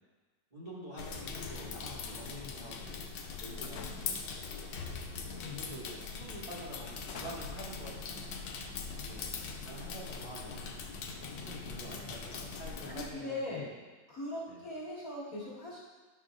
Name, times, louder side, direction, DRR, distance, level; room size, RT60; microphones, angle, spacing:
voice 1, 0.5-4.2 5.4-9.4 9.6-10.7 11.4-13.7 14.5-14.6, right 1 dB, 20° right, -9 dB, 1.8 m, -47 dB
sound 1, 1.0-13.1, left 5 dB, 90° left, 1.5 m, -42 dB
sound 2, 3.6-4.4 5.2-5.5 6.0-6.1 6.8-9.7, left 5 dB, 65° left, 1.0 m, -48 dB
voice 2, 5.3-5.6 12.9-13.7 14.1-15.8, left 2 dB, 45° left, -7 dB, 2.3 m, -40 dB
11.0 x 6.2 x 2.5 m, 1.3 s
omnidirectional pair, 2.1 m